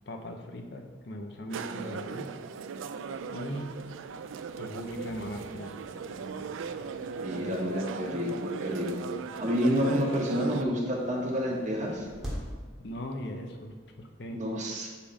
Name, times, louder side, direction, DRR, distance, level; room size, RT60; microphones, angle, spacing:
voice 1, 0.1-2.3 3.3-3.7 4.6-5.7 7.3-7.6 12.8-14.4, equal, 60° left, 3 dB, 0.7 m, -39 dB
sound 1, 1.5-10.6, right 5 dB, 80° right, 0.3 m, -38 dB
sound 2, 3.0-14.1, equal, ahead, 1.3 m, -47 dB
voice 2, 7.2-9.0 9.4-12.1 14.3-14.9, equal, 40° right, -2 dB, 1.1 m, -29 dB
6.6 x 3.6 x 5.1 m, 1.4 s
head